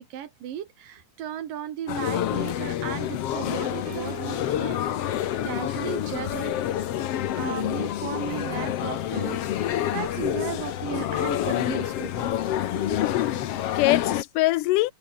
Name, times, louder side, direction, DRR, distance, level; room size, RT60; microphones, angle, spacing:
voice 1, 0.0-5.2 5.4-6.6 7.4-12.3, right 10 dB, 90° right, 3.6 m, -36 dB
sound 1, 1.9-14.2, left 11 dB, 60° left, 1.8 m, -28 dB
sound 2, 2.2-7.9, right 7 dB, 70° right, 0.8 m, -47 dB
voice 2, 12.9-14.9, left 18 dB, 90° left, 2.3 m, -24 dB
omnidirectional pair, 3.8 m